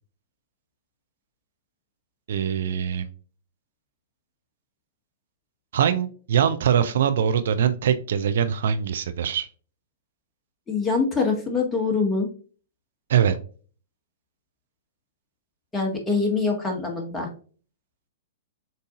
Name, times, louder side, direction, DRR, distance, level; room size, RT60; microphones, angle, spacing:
voice 1, 2.3-3.1 5.7-9.5 13.1-13.4, right 8 dB, 65° right, 9 dB, 0.5 m, -22 dB
voice 2, 10.7-12.3 15.7-17.3, left 4 dB, 15° left, 1 dB, 1.6 m, -24 dB
7.3 x 2.7 x 2.4 m, 0.40 s
figure-of-eight pair, 110°, 0 cm